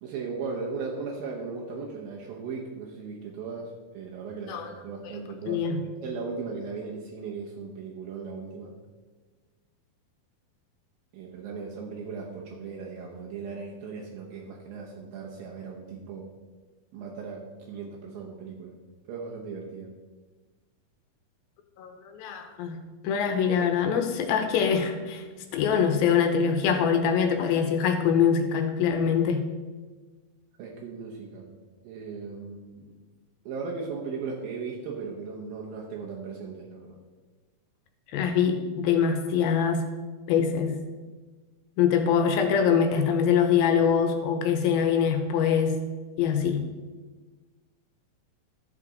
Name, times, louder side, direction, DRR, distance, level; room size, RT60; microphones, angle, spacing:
voice 1, 0.0-8.8 11.1-16.3 16.9-18.8 19.1-19.9 30.6-31.5 31.8-32.9 33.5-37.0, right 5 dB, 75° right, -2 dB, 2.7 m, -37 dB
voice 2, 5.5-5.8 21.8-25.2 25.5-29.5 38.1-39.8 40.3-40.8 41.8-45.8 46.2-46.7, left 7 dB, 85° left, 5 dB, 2.5 m, -24 dB
13.5 x 5.9 x 4.0 m, 1.3 s
omnidirectional pair, 4.3 m